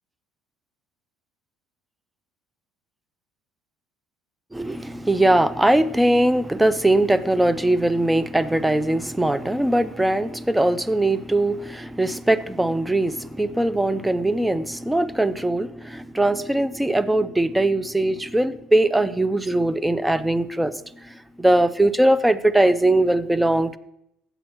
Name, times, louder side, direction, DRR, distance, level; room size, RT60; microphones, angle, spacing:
voice 1, 4.5-20.7 21.0-23.8, right 1 dB, 5° right, 0.5 m, -21 dB
15.0 x 8.0 x 3.0 m
cardioid pair, 105°, 0 cm